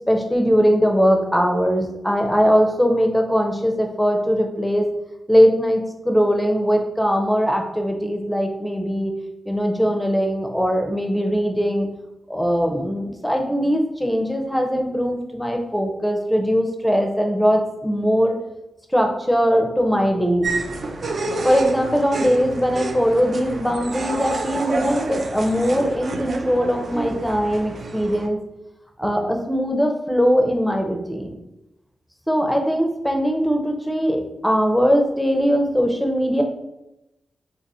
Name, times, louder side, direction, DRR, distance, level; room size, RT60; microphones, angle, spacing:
voice 1, 0.1-4.9 5.3-9.1 9.5-11.9 12.3-18.4 18.9-20.5 21.4-28.4 29.0-31.3 32.3-36.4, equal, ahead, 3 dB, 0.6 m, -20 dB
sound 1, 20.4-28.3, right 2 dB, 50° right, 0.5 m, -29 dB
4.0 x 2.9 x 4.1 m, 0.92 s
wide cardioid pair, 140°, 0 cm